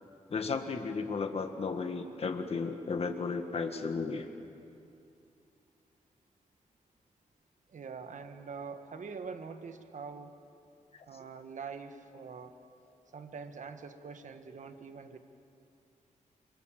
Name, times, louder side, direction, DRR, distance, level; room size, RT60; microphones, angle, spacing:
voice 1, 0.3-4.3 10.9-11.0, left 4 dB, 45° left, 6 dB, 1.5 m, -34 dB
voice 2, 7.7-10.4 11.1-12.5 13.1-15.2, right 5 dB, 65° right, 7 dB, 1.6 m, -44 dB
27.0 x 24.0 x 7.5 m, 2.6 s
wide cardioid pair, 160°, 14 cm